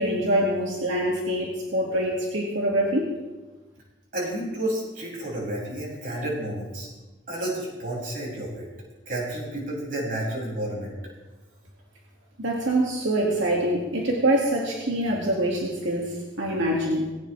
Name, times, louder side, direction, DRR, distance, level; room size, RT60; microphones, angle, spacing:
voice 1, 0.0-3.1 12.4-17.0, right 1 dB, 85° right, -3 dB, 2.6 m, -25 dB
voice 2, 4.1-6.9 7.3-8.7 9.1-10.9, right 1 dB, 45° right, -4 dB, 7.3 m, -31 dB
20.0 x 18.0 x 3.5 m, 1.2 s
head